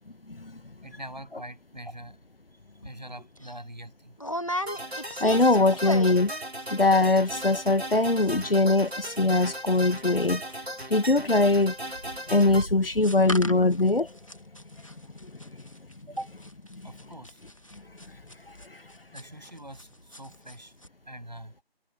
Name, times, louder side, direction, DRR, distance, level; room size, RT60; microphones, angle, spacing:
voice 1, 0.3-0.6 5.2-6.3 6.7-10.4 10.9-11.7 12.3-14.1 16.7-16.8 18.7-18.8, left 2 dB, 65° left, 1.0 m, -22 dB
voice 2, 0.8-2.2 2.8-4.2 16.1-16.3 16.8-17.4 19.1-20.8 21.0-21.5, right 1 dB, 45° right, 7.9 m, -42 dB
sound 1, 2.8-3.0 3.4-3.5 4.2-6.4 6.6-7.0 7.3-7.4 7.6-8.0 8.2-19.8 20.1-20.6 20.8-20.9, equal, 35° left, 2.2 m, -37 dB
sound 2, 4.7-12.7, right 1 dB, 90° right, 3.6 m, -36 dB
figure-of-eight pair, 175°, 31 cm